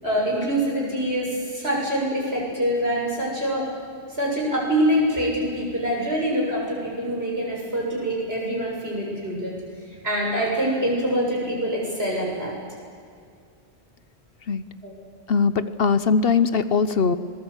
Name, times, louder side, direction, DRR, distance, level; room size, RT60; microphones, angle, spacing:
voice 1, 0.0-3.7 4.2-9.5 10.0-12.6 14.8-14.9, equal, 65° right, -2 dB, 7.5 m, -25 dB
voice 2, 15.3-17.2, left 5 dB, 60° left, 12 dB, 1.0 m, -20 dB
26.0 x 20.5 x 8.1 m, 2.2 s
omnidirectional pair, 1.1 m